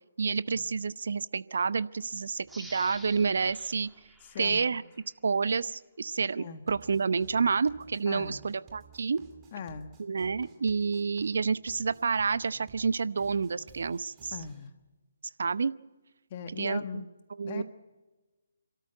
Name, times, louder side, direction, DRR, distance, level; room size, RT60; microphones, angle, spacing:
voice 1, 0.2-3.9 4.4-4.8 5.2-9.2 10.0-14.4 15.4-15.7 16.6-16.8 17.4-17.6, right 5 dB, 60° right, 16 dB, 0.8 m, -29 dB
sound 1, 2.5-5.1 5.6-5.7, right 1 dB, ahead, 1.9 m, -50 dB
voice 2, 4.2-4.7 6.4-6.6 8.1-8.4 9.5-9.9 14.3-14.7 16.3-17.1 17.4-17.6, left 6 dB, 40° left, 8 dB, 1.5 m, -39 dB
sound 2, 6.7-14.7, right 7 dB, 20° right, 2.5 m, -55 dB
28.0 x 13.5 x 9.3 m, 1.2 s
figure-of-eight pair, 140°, 0 cm